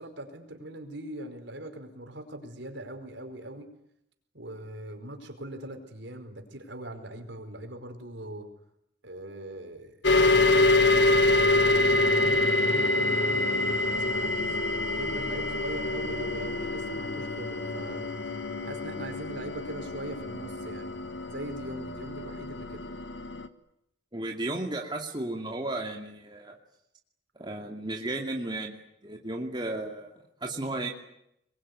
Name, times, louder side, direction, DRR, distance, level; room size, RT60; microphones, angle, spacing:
voice 1, 0.0-3.7 4.3-8.5 9.0-14.5 14.9-18.0 18.6-20.9 21.3-22.8, right 1 dB, 70° right, 5 dB, 5.0 m, -41 dB
sound 1, 10.0-23.5, left 2 dB, 70° left, 1.6 m, -26 dB
voice 2, 24.1-26.6 27.4-30.9, right 2 dB, 25° right, 1 dB, 2.5 m, -34 dB
25.5 x 22.0 x 9.7 m, 0.78 s
head